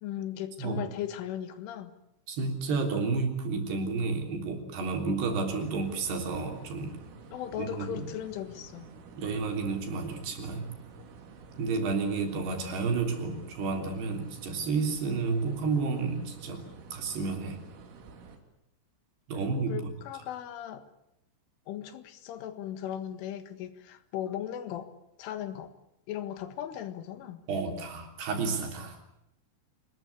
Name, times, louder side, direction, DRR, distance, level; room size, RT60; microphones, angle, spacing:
voice 1, 0.0-1.9 7.3-8.9 19.7-20.8 21.7-24.9 25.2-25.7 26.1-27.4, left 10 dB, 80° left, 11 dB, 4.1 m, -37 dB
voice 2, 2.3-7.0 7.6-7.9 9.2-10.7 11.6-16.6 16.9-17.6 19.3-19.8 27.5-29.0, right 4 dB, 60° right, 4 dB, 5.3 m, -31 dB
sound 1, 5.5-18.4, right 4 dB, 90° right, 5.6 m, -50 dB
26.5 x 20.0 x 8.3 m, 0.80 s
omnidirectional pair, 5.6 m